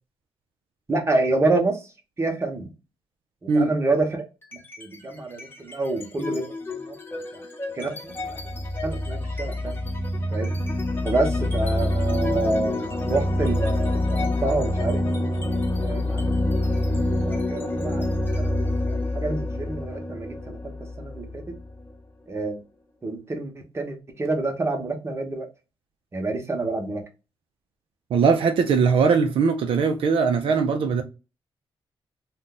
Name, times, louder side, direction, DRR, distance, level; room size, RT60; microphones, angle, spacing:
voice 1, 0.9-1.8 2.2-2.7 3.4-4.3 4.8-7.4 7.7-8.4 8.8-9.8 10.3-10.5 11.0-15.2 15.8-16.7 17.2-18.0 18.4-21.4 22.3-22.6 23.0-25.5 26.1-27.0, right 2 dB, 30° right, 0.9 m, -28 dB
sound 1, 4.4-5.0 5.3-21.9, left 1 dB, 25° left, 0.8 m, -27 dB
voice 2, 28.1-31.0, right 5 dB, 75° right, 0.5 m, -20 dB
2.5 x 2.3 x 3.8 m
cardioid pair, 90°, 9 cm